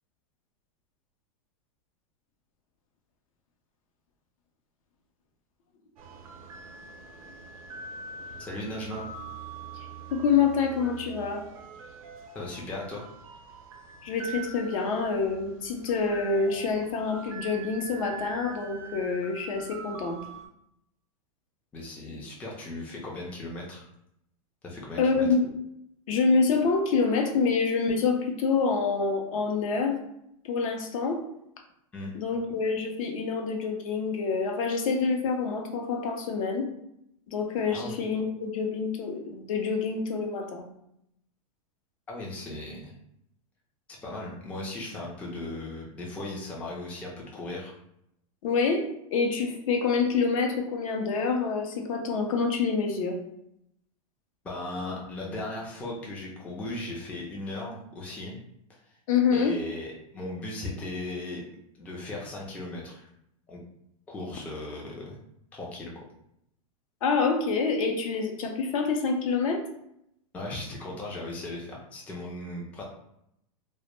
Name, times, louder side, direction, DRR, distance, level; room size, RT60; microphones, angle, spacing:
sound 1, 6.0-20.5, right 5 dB, 75° right, 0.5 m, -44 dB
voice 1, 8.4-9.0 12.3-13.0 21.7-23.9 24.6-25.3 31.9-32.1 37.7-38.0 42.1-42.9 44.0-47.7 54.4-58.4 58.7-58.8 59.3-61.4 61.7-63.1 63.5-63.6 64.1-65.2 65.5-65.9 70.3-72.8, left 2 dB, 10° left, -3 dB, 0.3 m, -37 dB
voice 2, 10.1-11.4 14.0-20.2 25.0-25.4 26.1-30.0 30.4-31.2 32.1-36.7 37.3-40.7 48.4-53.2 59.1-59.6 67.0-69.6, left 5 dB, 65° left, 3 dB, 0.5 m, -27 dB
2.1 x 2.0 x 3.0 m, 0.77 s
supercardioid pair, 145°, 19 cm